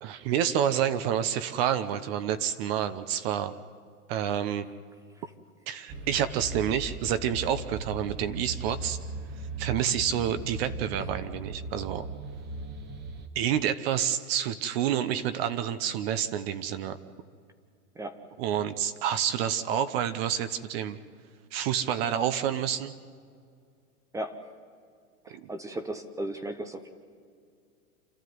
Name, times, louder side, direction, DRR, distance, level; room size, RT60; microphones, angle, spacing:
voice 1, 0.0-3.5 4.1-4.7 5.7-9.0 9.3-12.1 13.3-17.0 18.4-21.0 21.5-22.9 25.3-25.5, right 9 dB, 40° right, 12 dB, 1.0 m, -28 dB
sound 1, 5.9-13.3, right 2 dB, 20° right, 1.3 m, -38 dB
voice 2, 24.1-24.5 25.2-26.9, right 1 dB, 5° right, 9 dB, 0.7 m, -36 dB
28.0 x 13.0 x 9.5 m, 2.2 s
hypercardioid pair, 140°, 46 cm